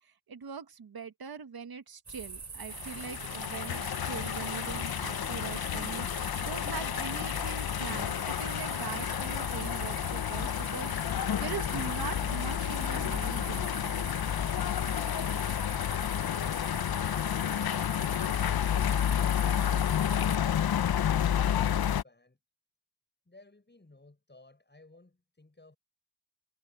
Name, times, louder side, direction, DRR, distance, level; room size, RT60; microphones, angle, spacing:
voice 1, 0.0-14.0, right 6 dB, 80° right, 1.4 m, -42 dB
sound 1, 2.1-20.4, right 4 dB, 50° right, 2.7 m, -43 dB
sound 2, 2.7-22.0, left 10 dB, 80° left, 0.6 m, -30 dB
voice 2, 21.3-22.4 23.3-25.8, left 2 dB, 30° left, 7.3 m, -59 dB
wide cardioid pair, 80°, 36 cm